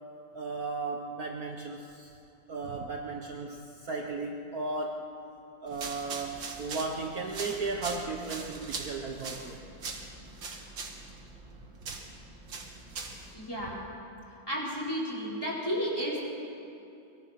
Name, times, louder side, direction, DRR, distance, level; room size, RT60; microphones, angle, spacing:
voice 1, 0.3-2.1 2.5-5.0 5.6-9.6, right 3 dB, 55° right, 1 dB, 1.6 m, -35 dB
sound 1, 5.7-13.3, right 4 dB, 75° right, 2.7 m, -41 dB
voice 2, 13.3-13.8 14.5-16.2, equal, 10° left, -5 dB, 4.7 m, -32 dB
23.5 x 23.5 x 5.9 m, 2.7 s
omnidirectional pair, 2.1 m